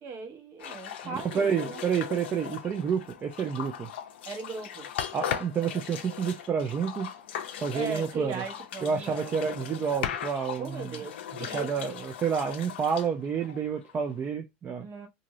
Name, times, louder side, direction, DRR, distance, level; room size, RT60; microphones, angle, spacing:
voice 1, 0.0-1.8 4.3-4.9 7.7-9.4 10.6-11.7 14.8-15.1, right 4 dB, 50° right, 1.1 m, -38 dB
sound 1, 0.6-14.1, left 9 dB, 85° left, 0.5 m, -38 dB
voice 2, 1.0-3.9 5.1-7.2 7.6-8.4 8.8-11.0 11.5-14.9, right 7 dB, 30° right, 0.4 m, -29 dB
2.6 x 2.6 x 3.0 m
hypercardioid pair, 105°, 6 cm